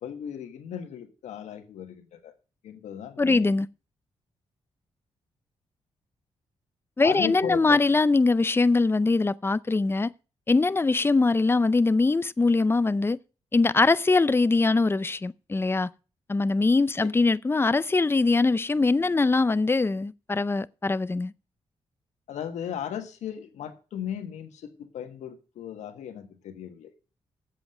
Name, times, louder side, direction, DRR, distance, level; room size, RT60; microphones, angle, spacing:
voice 1, 0.0-2.3 2.6-3.5 7.0-7.8 22.3-26.9, left 9 dB, 90° left, 1.5 m, -36 dB
voice 2, 3.2-3.7 7.0-10.1 10.5-13.2 13.5-15.9 16.3-21.3, left 3 dB, 20° left, 0.5 m, -22 dB
7.8 x 7.3 x 6.8 m
cardioid pair, 60°, 12 cm